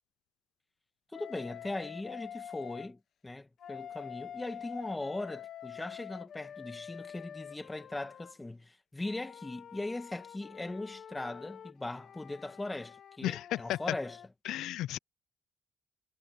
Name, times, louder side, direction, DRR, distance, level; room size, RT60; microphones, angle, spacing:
Wind instrument woodwind instrument, 1.1-2.9 3.6-8.4 9.0-14.3, left 9 dB, 65° left, 1.4 m, -47 dB
voice 1, 1.1-14.2, left 2 dB, 15° left, 1.6 m, -39 dB
voice 2, 13.2-13.8 14.4-15.0, left 14 dB, 85° left, 0.4 m, -34 dB
cardioid pair, 90°, 0 cm